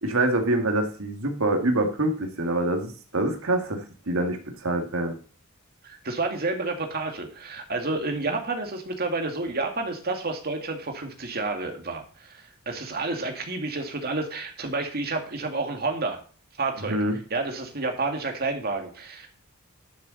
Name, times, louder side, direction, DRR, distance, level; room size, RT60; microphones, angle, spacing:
voice 1, 0.0-5.1 16.9-17.2, right 1 dB, 75° right, 4 dB, 2.2 m, -25 dB
voice 2, 5.8-16.2 16.6-17.0 17.3-19.3, right 3 dB, 45° right, 4 dB, 2.2 m, -30 dB
12.0 x 7.0 x 4.1 m, 0.40 s
head